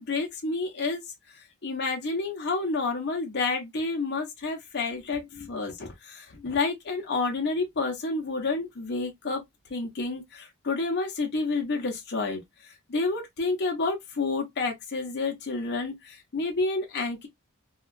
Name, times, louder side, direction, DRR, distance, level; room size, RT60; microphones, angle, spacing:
voice 1, 0.0-9.4 9.7-17.3, left 3 dB, 50° left, 0.7 m, -30 dB
2.8 x 2.3 x 2.4 m
head